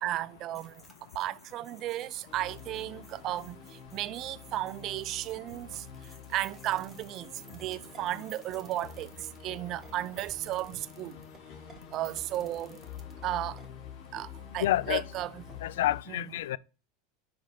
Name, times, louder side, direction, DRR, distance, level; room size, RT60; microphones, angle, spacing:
voice 1, 0.0-0.7 1.2-3.6 3.9-5.8 6.3-7.3 7.6-11.2 11.9-12.8 13.2-13.6 14.1-14.3 14.5-15.3, right 14 dB, 45° right, 0.4 m, -34 dB
sound 1, 0.5-10.4, left 1 dB, 15° left, 1.8 m, -61 dB
sound 2, 2.3-16.0, left 7 dB, 45° left, 1.6 m, -48 dB
sound 3, 6.2-13.7, right 8 dB, 20° right, 1.3 m, -53 dB
voice 2, 14.6-15.0 15.6-16.6, left 14 dB, 85° left, 0.3 m, -28 dB
5.2 x 5.1 x 5.8 m
supercardioid pair, 130°, 0 cm